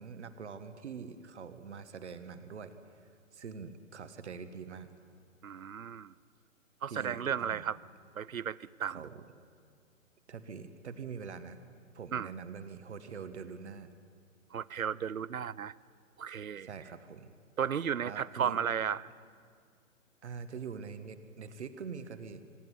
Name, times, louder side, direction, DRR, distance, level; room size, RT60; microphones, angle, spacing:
voice 1, 0.0-2.7 3.3-4.9 6.9-7.7 8.9-9.2 10.3-11.6 11.9-13.9 16.6-17.3 18.0-18.6 20.2-22.4, right 6 dB, 55° right, 10 dB, 1.5 m, -44 dB
voice 2, 5.4-6.1 6.8-7.8 8.2-9.0 12.1-12.3 14.5-15.7 16.2-16.7 17.6-19.0, right 8 dB, 85° right, 21 dB, 0.6 m, -34 dB
25.0 x 11.0 x 9.8 m, 2.3 s
figure-of-eight pair, 125°, 40 cm